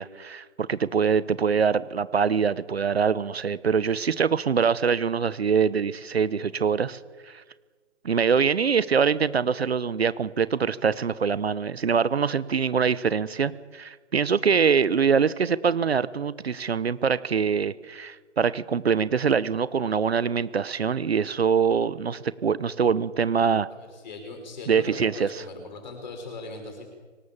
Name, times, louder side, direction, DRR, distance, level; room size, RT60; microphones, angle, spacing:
voice 1, 0.0-7.0 7.3-7.4 8.0-23.7 24.7-25.4, right 6 dB, 55° right, 17 dB, 1.0 m, -24 dB
voice 2, 23.7-26.8, left 2 dB, 40° left, 4 dB, 6.1 m, -39 dB
25.0 x 19.0 x 7.3 m, 1.4 s
hypercardioid pair, 170°, 36 cm